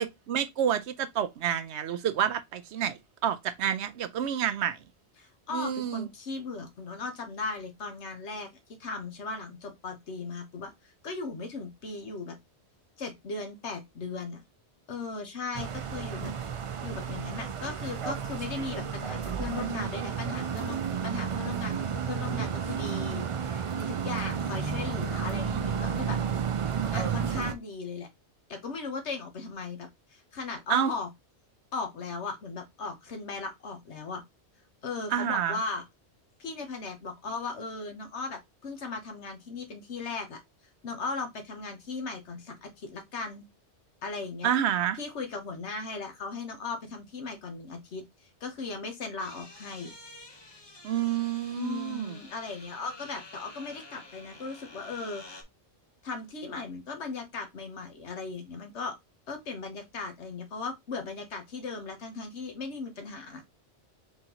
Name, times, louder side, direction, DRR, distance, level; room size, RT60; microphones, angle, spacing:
voice 1, 0.0-4.8 5.5-6.1 25.5-25.6 30.7-30.9 35.1-35.6 44.4-45.0 50.8-52.2, right 9 dB, 85° right, 0.9 m, -29 dB
voice 2, 5.2-8.5 8.8-10.7 11.0-12.3 13.0-14.4 14.9-16.3 16.8-26.2 26.6-28.1 28.5-31.1 31.7-34.2 34.8-35.8 36.4-40.4 40.8-43.5 44.0-44.5 45.0-48.0 48.4-49.9 51.6-55.2 56.0-58.9 59.3-63.4, left 4 dB, 85° left, 1.4 m, -37 dB
sound 1, 15.5-27.5, right 7 dB, 60° right, 0.3 m, -32 dB
sound 2, 49.2-55.4, left 2 dB, 25° left, 0.8 m, -49 dB
4.3 x 3.7 x 2.9 m
omnidirectional pair, 1.1 m